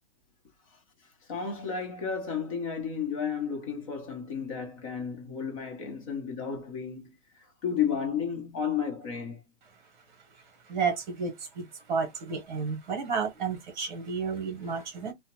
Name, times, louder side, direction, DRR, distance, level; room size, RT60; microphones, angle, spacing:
voice 1, 1.3-9.4, left 7 dB, 30° left, 0.9 m, -32 dB
voice 2, 10.3-15.1, right 5 dB, 40° right, 1.0 m, -32 dB
2.4 x 2.1 x 2.9 m
hypercardioid pair, 170°, 35 cm